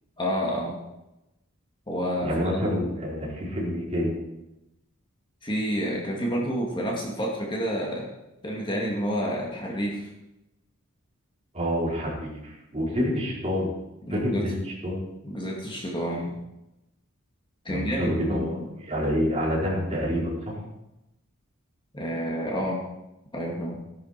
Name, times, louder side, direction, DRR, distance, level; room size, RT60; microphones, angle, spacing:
voice 1, 0.2-0.8 1.9-2.6 5.4-8.1 8.4-10.1 14.1-14.6 15.2-16.4 17.6-18.7 21.9-22.8 23.3-23.8, equal, 25° left, -2 dB, 2.4 m, -29 dB
voice 2, 2.2-4.2 11.5-13.7 14.1-14.5 14.8-15.0 17.7-18.6 18.9-20.6, equal, 30° right, -4 dB, 4.6 m, -27 dB
16.0 x 11.0 x 4.5 m, 0.93 s
head